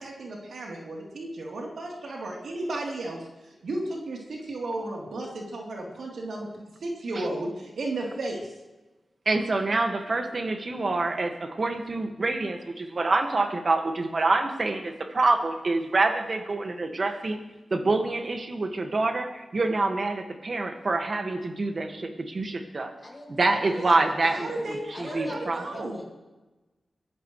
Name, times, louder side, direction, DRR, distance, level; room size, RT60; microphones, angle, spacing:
voice 1, 0.0-6.5 6.8-8.5 23.6-23.9 24.3-26.0, right 2 dB, 80° right, -2 dB, 3.5 m, -34 dB
voice 2, 9.3-17.4 17.7-22.9 23.3-25.7, right 3 dB, 50° right, 5 dB, 1.9 m, -26 dB
voice 3, 23.0-24.0 24.4-26.0, left 2 dB, 25° left, -4 dB, 6.8 m, -42 dB
23.0 x 14.5 x 3.3 m, 1.1 s
wide cardioid pair, 80°, 0 cm